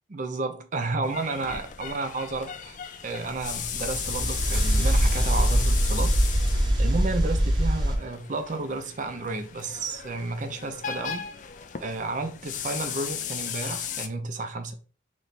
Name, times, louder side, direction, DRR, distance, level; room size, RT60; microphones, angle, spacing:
voice 1, 0.1-2.8 3.0-6.2 6.8-11.3 11.8-14.7, right 3 dB, 45° right, 0.5 m, -32 dB
sound 1, 1.0-14.1, left 8 dB, 45° left, 0.4 m, -36 dB
sound 2, 3.4-8.0, equal, 25° right, 1.0 m, -23 dB
3.3 x 3.0 x 4.0 m
head